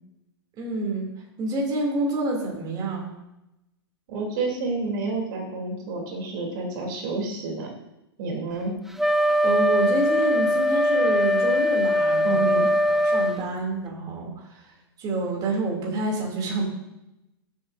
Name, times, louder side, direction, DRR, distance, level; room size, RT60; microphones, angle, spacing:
voice 1, 0.6-1.1 1.4-3.1 9.4-12.6 12.9-14.7 15.0-16.7, right 2 dB, 30° right, -2 dB, 2.9 m, -28 dB
voice 2, 4.1-7.7 8.2-8.8 12.2-12.7, right 3 dB, 55° right, 0 dB, 3.3 m, -29 dB
Wind instrument woodwind instrument, 9.0-13.4, left 1 dB, ahead, 0.5 m, -21 dB
14.0 x 7.8 x 2.7 m, 0.91 s
hypercardioid pair, 115°, 13 cm